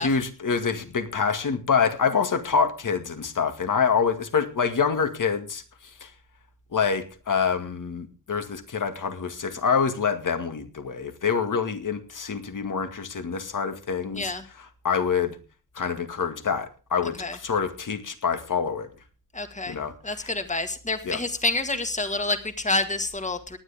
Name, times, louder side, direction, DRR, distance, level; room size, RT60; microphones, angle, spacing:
voice 1, 0.0-6.1 6.7-15.4 15.7-18.9 19.7-20.3 21.0-21.2, left 6 dB, 60° left, 8 dB, 2.2 m, -26 dB
voice 2, 19.3-19.8 20.0-23.6, left 2 dB, 20° left, 8 dB, 1.8 m, -28 dB
18.5 x 10.5 x 3.6 m, 0.36 s
wide cardioid pair, 130°, 35 cm